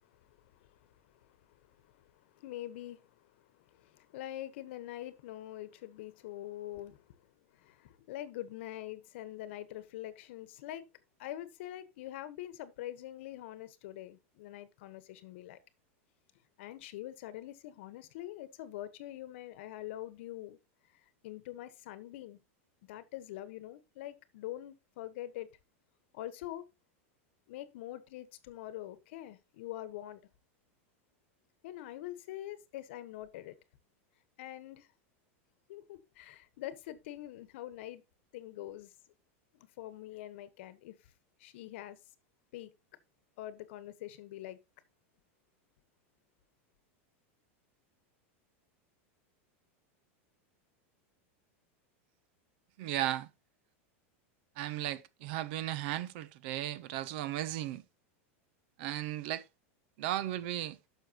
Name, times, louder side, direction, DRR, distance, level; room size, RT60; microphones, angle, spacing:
voice 1, 0.0-10.9 11.2-15.6 16.6-20.6 20.9-22.4 22.8-25.5 26.1-26.6 27.5-30.2 31.6-33.6 34.4-34.9 35.7-38.0 38.3-38.9 39.5-41.1 41.4-42.0 42.5-42.7 43.4-44.6, left 14 dB, 60° left, 1.2 m, -45 dB
voice 2, 52.8-53.3 54.6-57.8 58.8-59.4 60.0-60.8, right 13 dB, 50° right, 0.8 m, -35 dB
11.5 x 6.4 x 2.9 m
supercardioid pair, 165°, 7 cm